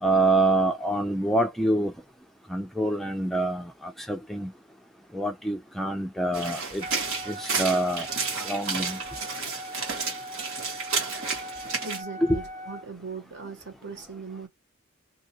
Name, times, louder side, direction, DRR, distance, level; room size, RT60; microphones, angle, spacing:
voice 1, 0.0-1.9 2.5-4.5 5.1-6.8 7.3-8.1 8.4-9.0 12.2-12.3, right 2 dB, ahead, 0.3 m, -26 dB
sound 1, 6.3-12.0, right 4 dB, 75° right, 1.4 m, -31 dB
Wind instrument woodwind instrument, 6.8-12.9, equal, 40° right, 0.8 m, -41 dB
voice 2, 11.8-14.5, right 5 dB, 60° right, 1.3 m, -39 dB
2.6 x 2.5 x 2.7 m
head